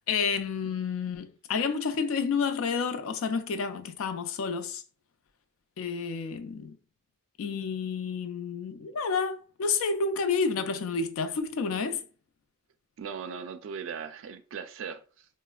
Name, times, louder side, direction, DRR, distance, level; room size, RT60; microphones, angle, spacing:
voice 1, 0.1-4.8 5.8-6.8 7.4-12.0, left 5 dB, 75° left, 0.4 m, -30 dB
voice 2, 13.0-15.3, right 6 dB, 65° right, 0.3 m, -39 dB
3.2 x 2.0 x 2.2 m
head